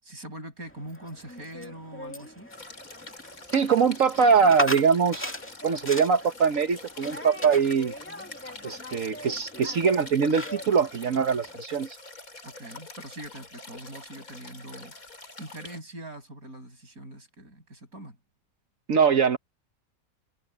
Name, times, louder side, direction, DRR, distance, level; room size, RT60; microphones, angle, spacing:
voice 1, 0.0-2.5 12.4-18.2, right 1 dB, 85° right, 7.6 m, -43 dB
sound 1, 0.7-11.6, left 1 dB, 10° left, 2.2 m, -39 dB
sound 2, 2.5-15.8, left 2 dB, 75° left, 4.7 m, -45 dB
voice 2, 3.5-5.3 5.6-7.9 8.6-12.0 18.9-19.4, right 6 dB, 65° right, 1.5 m, -22 dB
omnidirectional pair, 1.5 m